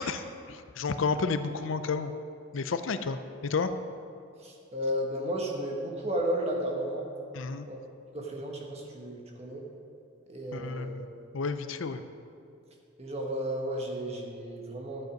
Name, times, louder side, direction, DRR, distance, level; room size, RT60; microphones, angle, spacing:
voice 1, 0.0-2.1 2.5-3.7 7.3-7.7 10.5-11.1 11.3-12.0, left 4 dB, 65° left, 10 dB, 0.5 m, -31 dB
voice 2, 4.4-7.1 7.7-7.8 8.1-9.6 10.3-10.9 13.0-15.1, equal, 30° right, 0 dB, 1.3 m, -33 dB
12.0 x 7.9 x 5.2 m, 2.5 s
head